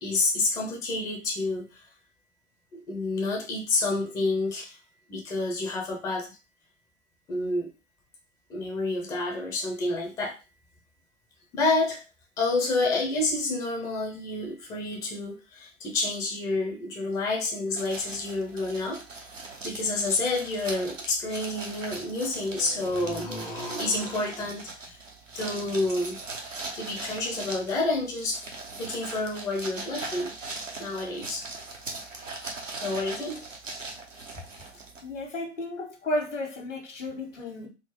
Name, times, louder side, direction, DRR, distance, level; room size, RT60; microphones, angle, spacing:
voice 1, 0.0-1.9 2.7-4.8 5.1-6.3 7.3-7.7 8.5-10.4 11.5-12.0 12.4-19.0 19.6-25.0 25.3-26.2 26.7-30.3 30.8-31.5 32.7-33.5, left 2 dB, 10° left, 0.4 m, -29 dB
sound 1, 17.8-35.3, right 3 dB, 90° right, 0.8 m, -40 dB
voice 2, 35.0-37.7, left 1 dB, 75° left, 1.3 m, -33 dB
3.8 x 2.0 x 2.9 m
figure-of-eight pair, 100°, 37 cm